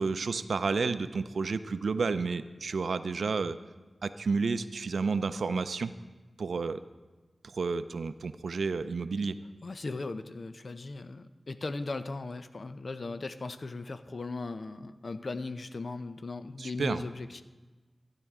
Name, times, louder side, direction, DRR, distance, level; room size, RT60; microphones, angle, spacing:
voice 1, 0.0-3.6 4.0-5.9 6.4-6.8 7.4-9.4 16.6-17.0, right 4 dB, 80° right, 12 dB, 0.4 m, -31 dB
voice 2, 9.6-17.4, left 3 dB, 60° left, 10 dB, 0.6 m, -38 dB
15.0 x 10.0 x 3.6 m, 1.2 s
cardioid pair, 45°, 0 cm